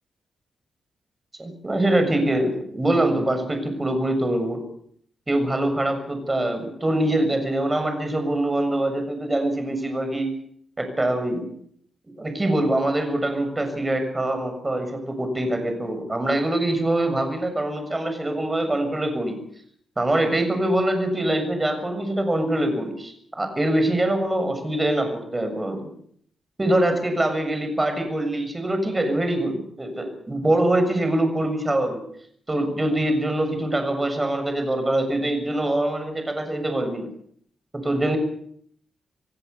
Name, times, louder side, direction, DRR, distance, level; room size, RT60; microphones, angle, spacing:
voice 1, 1.4-4.6 5.3-10.3 10.8-11.5 12.2-19.4 20.0-25.9 26.6-32.0 32.5-37.1 37.7-38.2, right 1 dB, 20° right, 7 dB, 7.1 m, -24 dB
28.0 x 16.5 x 7.1 m, 0.64 s
cardioid pair, 110°, 0 cm